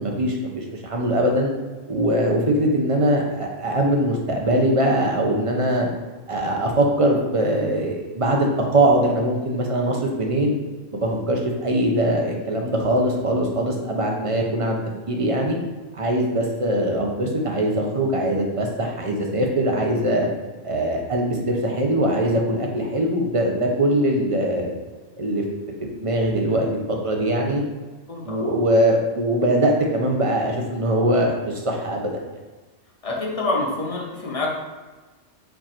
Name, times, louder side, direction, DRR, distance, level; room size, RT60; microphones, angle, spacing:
voice 1, 0.0-1.5 1.9-5.9 6.3-10.6 10.9-14.8 15.1-15.6 15.9-20.3 20.6-24.7 25.2-25.4 25.8-27.6 28.3-32.2, right 1 dB, 45° right, 1 dB, 0.4 m, -22 dB
voice 2, 28.1-28.5 33.0-34.5, left 2 dB, 35° left, -3 dB, 0.7 m, -26 dB
4.5 x 2.5 x 4.2 m, 1.3 s
omnidirectional pair, 1.3 m